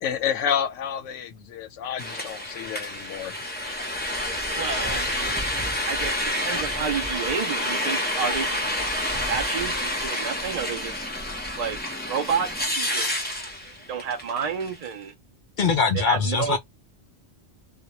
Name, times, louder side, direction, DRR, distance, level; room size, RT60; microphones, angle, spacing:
voice 1, 0.0-3.3, left 8 dB, 90° left, 0.9 m, -29 dB
sound 1, 2.0-14.9, left 1 dB, 15° left, 0.4 m, -29 dB
voice 2, 4.6-5.3 5.9-8.7 9.3-11.0 11.6-11.8 12.1-13.3 13.9-15.1 16.0-16.6, right 6 dB, 75° right, 0.3 m, -30 dB
voice 3, 15.6-16.6, left 5 dB, 55° left, 0.6 m, -22 dB
2.2 x 2.1 x 2.8 m
omnidirectional pair, 1.2 m